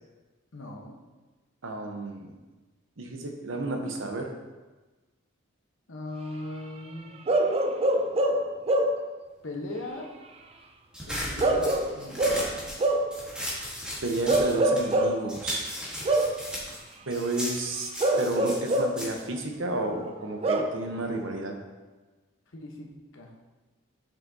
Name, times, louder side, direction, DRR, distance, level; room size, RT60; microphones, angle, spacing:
voice 1, 0.5-1.0 5.9-7.1 9.4-10.1 11.1-12.4 22.5-23.3, left 2 dB, 75° left, 1 dB, 1.0 m, -39 dB
voice 2, 1.6-2.3 3.0-4.3 14.0-15.7 17.1-17.9 18.2-21.5, right 2 dB, 75° right, 3 dB, 0.8 m, -31 dB
Bark / Livestock farm animals working animals, 7.3-9.1 11.4-13.2 14.3-15.3 16.1-16.5 18.0-19.1 20.4-20.8, right 1 dB, 30° right, 0.3 m, -24 dB
sound 1, 10.9-15.0 15.3-20.1, equal, 5° right, 1.3 m, -37 dB
7.3 x 5.6 x 2.7 m, 1.2 s
head